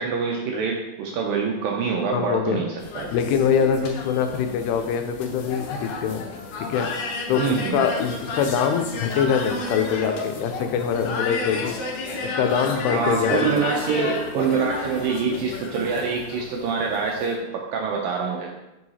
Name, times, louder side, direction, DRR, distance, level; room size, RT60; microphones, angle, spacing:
voice 1, 0.0-3.1 7.4-7.9 12.9-18.5, right 5 dB, 80° right, 0 dB, 2.0 m, -25 dB
voice 2, 2.1-2.6 3.1-6.3 6.7-11.7 12.2-13.6, left 7 dB, 85° left, 6 dB, 2.7 m, -24 dB
sound 1, 2.8-17.3, left 3 dB, 70° left, 2.2 m, -32 dB
7.7 x 4.7 x 4.2 m, 0.98 s
omnidirectional pair, 4.6 m